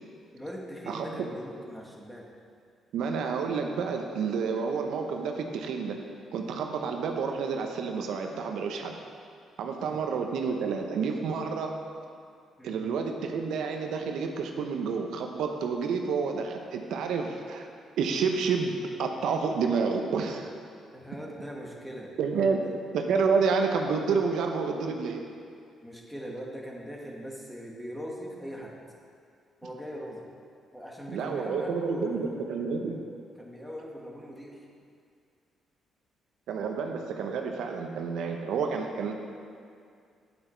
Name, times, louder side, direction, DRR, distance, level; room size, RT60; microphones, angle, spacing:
voice 1, 0.3-2.3 9.8-10.0 12.6-12.9 20.9-22.8 25.8-28.8 29.6-30.2 30.7-33.1 33.4-34.6, equal, 5° left, -2 dB, 1.6 m, -41 dB
voice 2, 2.9-6.0 6.3-8.9 9.6-11.7 12.6-17.7 18.0-20.5 22.2-22.6 22.9-25.2 31.1-33.0 36.5-39.1, right 5 dB, 80° right, 3 dB, 0.8 m, -29 dB
8.7 x 8.0 x 4.5 m, 2.3 s
cardioid pair, 90°, 0 cm